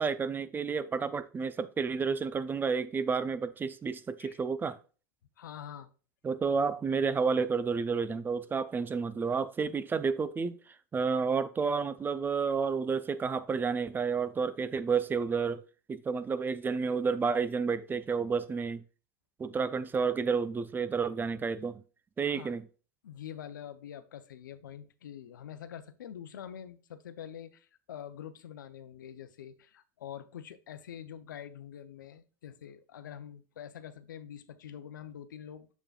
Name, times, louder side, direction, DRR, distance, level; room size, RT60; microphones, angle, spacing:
voice 1, 0.0-4.8 6.2-10.6 10.9-15.6 15.9-18.8 19.4-21.8 22.2-22.6, right 5 dB, 20° right, 0.5 m, -30 dB
voice 2, 5.4-5.9 22.2-22.6 23.0-35.7, left 9 dB, 80° left, 0.6 m, -45 dB
7.1 x 6.7 x 2.4 m
hypercardioid pair, 95°, 10 cm